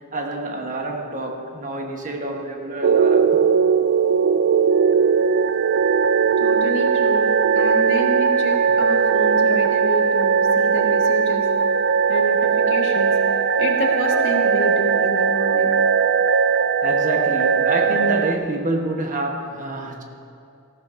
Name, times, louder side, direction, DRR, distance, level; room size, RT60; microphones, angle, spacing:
voice 1, 0.1-3.4 16.8-20.0, right 2 dB, 35° right, 2 dB, 1.1 m, -27 dB
sound 1, 2.8-18.4, right 6 dB, 50° right, 0.3 m, -19 dB
voice 2, 6.4-7.3 7.5-11.4 12.1-13.1 13.6-15.7, equal, 60° left, 0 dB, 1.6 m, -28 dB
18.5 x 14.5 x 2.6 m, 2.5 s
head